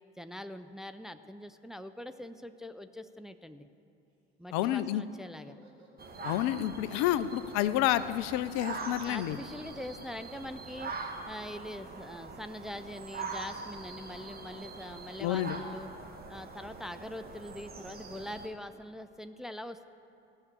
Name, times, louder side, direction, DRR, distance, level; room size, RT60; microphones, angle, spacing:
voice 1, 0.2-3.7 4.4-5.6 9.0-15.9 16.3-19.8, left 1 dB, ahead, 10 dB, 0.5 m, -43 dB
Laughter, 4.4-12.8, right 2 dB, 85° right, 2.1 m, -62 dB
voice 2, 4.5-5.0 6.2-9.4 15.2-15.6, left 13 dB, 60° left, 14 dB, 0.5 m, -29 dB
sound 1, 6.0-18.5, right 4 dB, 30° right, 1.7 m, -43 dB
16.5 x 6.6 x 8.3 m, 2.9 s
hypercardioid pair, 60°, 32 cm